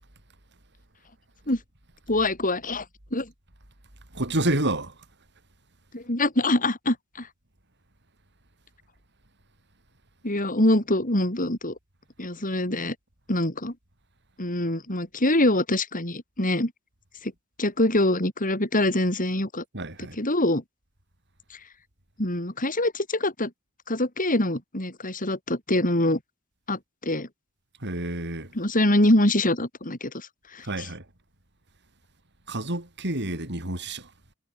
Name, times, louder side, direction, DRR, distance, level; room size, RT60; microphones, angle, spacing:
voice 1, 2.1-2.8 3.1-3.3 5.9-7.3 10.2-11.7 12.2-12.9 13.3-13.7 14.4-16.7 17.2-17.3 17.6-19.6 20.2-20.6 22.2-23.5 23.9-26.2 26.7-27.3 28.5-30.3 30.5-30.9, left 1 dB, 40° left, 7.5 m, -24 dB
voice 2, 4.1-5.0 19.7-20.2 27.8-28.5 30.6-31.0 32.5-34.1, right 1 dB, 55° right, 5.7 m, -29 dB
head